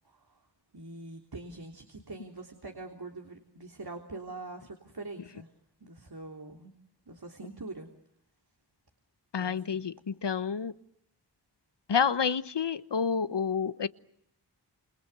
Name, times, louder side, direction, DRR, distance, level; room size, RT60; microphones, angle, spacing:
voice 1, 0.7-5.5 5.8-6.7 7.1-7.9 9.4-9.8, right 2 dB, 60° right, 3.3 m, -44 dB
voice 2, 9.3-10.7 11.9-13.9, left 6 dB, 75° left, 1.1 m, -29 dB
29.5 x 28.0 x 6.8 m
cardioid pair, 40°, 42 cm